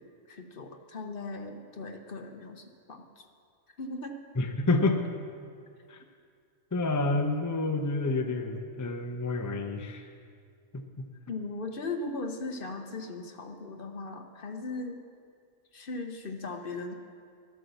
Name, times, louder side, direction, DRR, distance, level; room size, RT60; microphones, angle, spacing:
voice 1, 0.0-3.3 3.7-4.1 11.3-15.0 15.7-16.9, left 3 dB, 50° left, 5 dB, 0.9 m, -38 dB
voice 2, 4.4-5.0 5.9-6.0 6.7-10.1 10.7-11.1, left 2 dB, 20° left, 4 dB, 0.5 m, -29 dB
12.5 x 7.9 x 6.9 m, 2.2 s
omnidirectional pair, 1.4 m